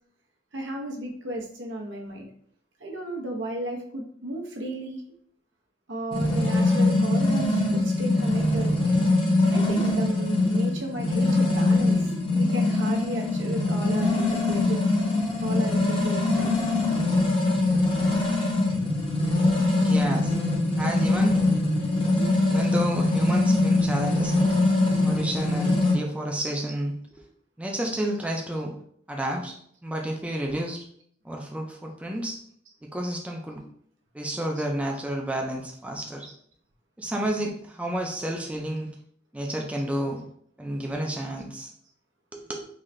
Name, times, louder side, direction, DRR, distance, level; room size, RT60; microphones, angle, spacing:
voice 1, 0.5-2.3 2.8-5.0 5.9-8.7 9.5-14.8 15.4-16.7 22.2-22.3 34.5-34.6 36.2-36.3, right 1 dB, 80° right, 0 dB, 0.9 m, -34 dB
sound 1, 6.1-25.9, left 2 dB, 30° left, 0.7 m, -23 dB
voice 2, 19.8-20.3 20.8-21.4 22.5-24.5 25.0-26.9 27.6-28.7 29.1-29.6 29.8-30.8 31.2-32.4 32.8-33.6 34.1-36.3 37.0-38.9 39.3-40.2 40.6-41.7 42.3-42.6, right 1 dB, 5° right, 0 dB, 0.4 m, -30 dB
3.8 x 2.6 x 3.2 m, 0.63 s
head